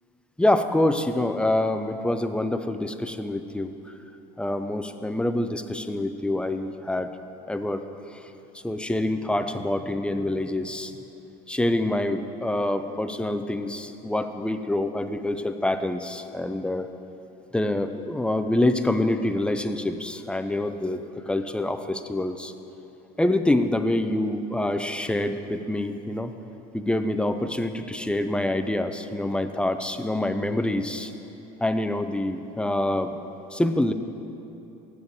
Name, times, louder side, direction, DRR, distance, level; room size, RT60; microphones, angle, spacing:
voice 1, 0.4-3.7 4.4-7.1 7.5-7.8 8.1-8.2 8.6-10.9 11.5-16.9 17.5-22.5 23.2-26.3 26.7-31.1 31.6-33.2 33.5-33.9, left 1 dB, 5° left, 9 dB, 0.5 m, -26 dB
7.2 x 7.0 x 7.9 m, 2.9 s
supercardioid pair, 90°, 20 cm